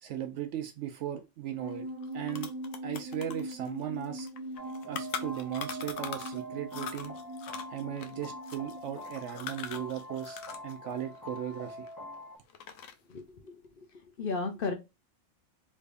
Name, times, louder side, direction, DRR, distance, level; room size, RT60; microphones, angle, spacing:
voice 1, 0.0-1.9 2.1-2.5 2.8-4.3 4.9-7.1 7.7-11.9, right 11 dB, 75° right, 0.9 m, -37 dB
sound 1, 1.6-9.0, right 1 dB, 50° right, 0.4 m, -41 dB
sound 2, 1.7-1.8 2.0-6.4 6.7-10.7 11.0-12.1 12.5-13.1, left 7 dB, 90° left, 1.0 m, -42 dB
sound 3, 4.6-12.4, equal, 20° left, 0.7 m, -45 dB
voice 2, 13.1-14.7, left 4 dB, 55° left, 0.8 m, -35 dB
3.4 x 3.2 x 2.4 m
omnidirectional pair, 1.3 m